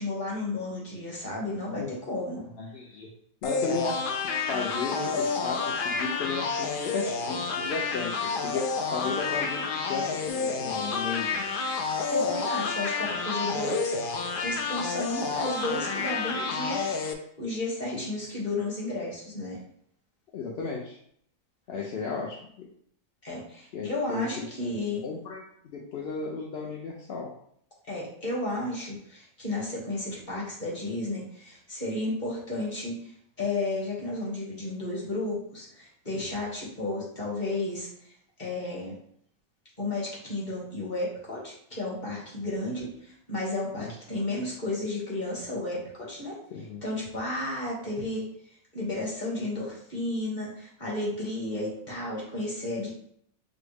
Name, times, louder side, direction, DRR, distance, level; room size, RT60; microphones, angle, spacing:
voice 1, 0.0-2.4 12.1-14.0 14.4-16.8 17.4-19.6 23.2-25.0 27.9-33.1 33.4-37.9 38.4-39.0 39.8-46.4 46.8-48.2 48.7-52.9, left 2 dB, 30° left, -5 dB, 1.5 m, -32 dB
voice 2, 2.6-3.1 3.4-11.5 17.9-18.3 20.3-21.0 21.7-22.4 23.7-24.7 25.0-27.3 43.8-43.9 46.5-46.8, left 4 dB, 55° left, -2 dB, 0.7 m, -34 dB
sound 1, 3.4-17.1, left 4 dB, 90° left, 0.4 m, -30 dB
6.0 x 2.3 x 3.4 m, 0.66 s
omnidirectional pair, 1.5 m